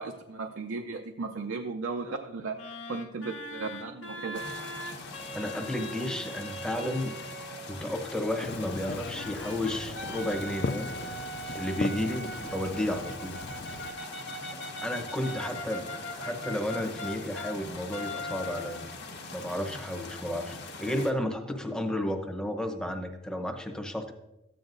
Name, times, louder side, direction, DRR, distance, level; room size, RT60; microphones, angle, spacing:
voice 1, 0.0-4.5, right 4 dB, 75° right, 4 dB, 0.5 m, -36 dB
sound 1, 2.6-7.7 8.6-17.6 17.9-19.0, equal, 80° left, 1.4 m, -41 dB
sound 2, 4.3-21.1, left 3 dB, 60° left, 1.4 m, -43 dB
voice 2, 5.3-7.2 7.7-11.1 11.5-13.4 14.8-18.8 19.3-24.1, left 1 dB, 5° left, 5 dB, 0.9 m, -32 dB
Fireworks, 8.4-13.9, left 4 dB, 45° left, 0.4 m, -39 dB
13.5 x 9.1 x 2.6 m, 0.97 s
head